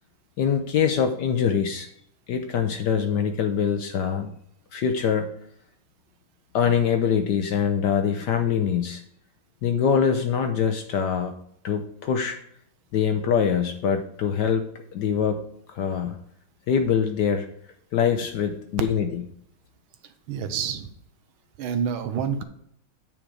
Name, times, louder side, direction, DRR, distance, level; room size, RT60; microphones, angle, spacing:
voice 1, 0.4-1.9 2.3-4.3 4.7-5.3 6.5-9.0 9.6-11.3 11.6-12.4 12.9-14.7 14.9-15.5 15.7-16.2 16.7-17.5 17.9-19.2, left 7 dB, 65° left, 6 dB, 1.1 m, -24 dB
voice 2, 20.3-20.9 21.6-22.4, right 7 dB, 75° right, 10 dB, 1.6 m, -27 dB
9.1 x 5.3 x 4.8 m, 0.69 s
omnidirectional pair, 2.4 m